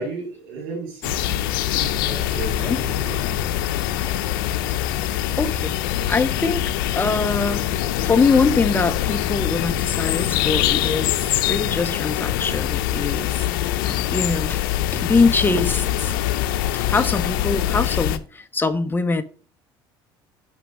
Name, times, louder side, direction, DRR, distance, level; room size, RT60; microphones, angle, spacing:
voice 1, 0.0-1.4 1.7-3.2, right 3 dB, 85° right, 3.5 m, -33 dB
sound 1, 1.0-18.2, left 12 dB, 85° left, 0.6 m, -24 dB
voice 2, 5.4-5.8 6.1-14.6 14.9-16.2 16.7-19.2, left 4 dB, 20° left, 1.0 m, -23 dB
6.2 x 5.9 x 6.0 m
supercardioid pair, 80°, 11 cm